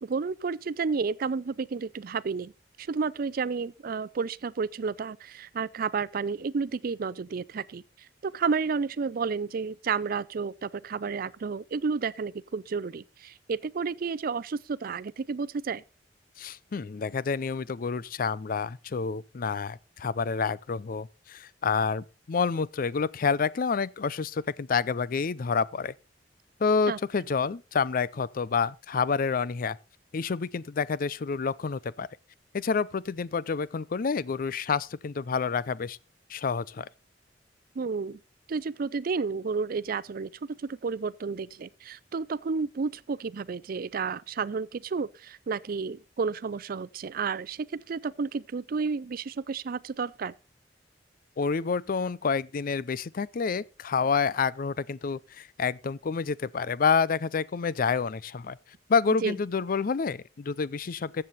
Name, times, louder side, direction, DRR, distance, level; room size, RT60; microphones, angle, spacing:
voice 1, 0.0-2.5 2.8-7.8 8.2-15.8 26.9-27.0 37.8-38.2 38.5-50.3 59.2-59.3, right 5 dB, 55° right, 0.4 m, -31 dB
voice 2, 16.4-25.9 26.6-29.8 30.1-32.1 32.5-36.0 36.3-36.9 51.4-58.6 58.9-61.2, left 5 dB, 50° left, 0.5 m, -28 dB
14.0 x 7.8 x 4.1 m
head